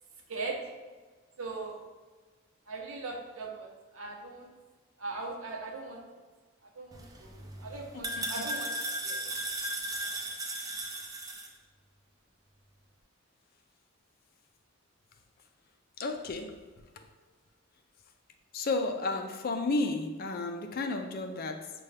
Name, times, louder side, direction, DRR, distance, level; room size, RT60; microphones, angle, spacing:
voice 1, 1.4-1.8 2.7-3.7 3.9-4.5 5.0-6.0 6.8-8.7 9.0-9.2 10.0-10.1, right 3 dB, 80° right, 1 dB, 0.8 m, -39 dB
sound 1, 6.9-11.5, right 1 dB, 15° right, 0.4 m, -36 dB
voice 2, 7.9-8.3 16.0-16.6 17.0-17.1 18.5-21.7, left 3 dB, 45° left, 6 dB, 0.4 m, -32 dB
6.5 x 2.3 x 3.3 m, 1.4 s
head